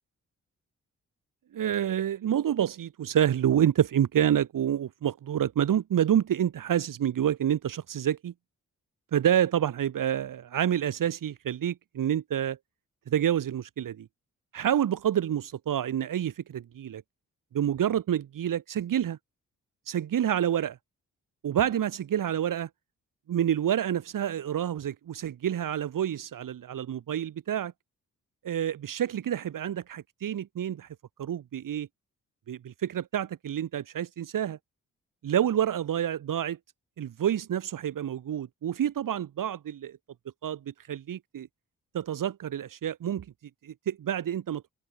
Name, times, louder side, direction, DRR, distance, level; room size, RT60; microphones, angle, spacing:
voice 1, 1.5-8.3 9.1-12.6 13.1-14.1 14.5-17.0 17.5-19.2 19.9-20.8 21.4-22.7 23.3-27.7 28.4-30.9 31.2-31.9 32.5-34.6 35.2-36.6 37.0-40.0 40.4-41.5 41.9-43.3 43.6-44.6, right 10 dB, 75° right, 2.9 m, -28 dB
open air
supercardioid pair, 55°, 33 cm